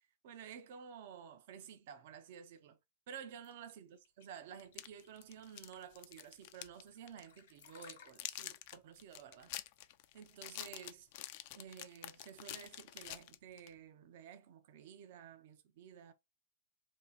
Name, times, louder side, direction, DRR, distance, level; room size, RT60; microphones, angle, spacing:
voice 1, 0.2-2.8 3.1-9.5 10.1-11.1 11.5-16.1, right 8 dB, 60° right, 0.6 m, -52 dB
sound 1, 3.4-11.1, left 9 dB, 70° left, 1.0 m, -63 dB
sound 2, 4.6-6.8 7.1-7.3 7.6-13.7, left 15 dB, 50° left, 0.3 m, -47 dB
2.8 x 2.4 x 4.0 m
hypercardioid pair, 145°, 0 cm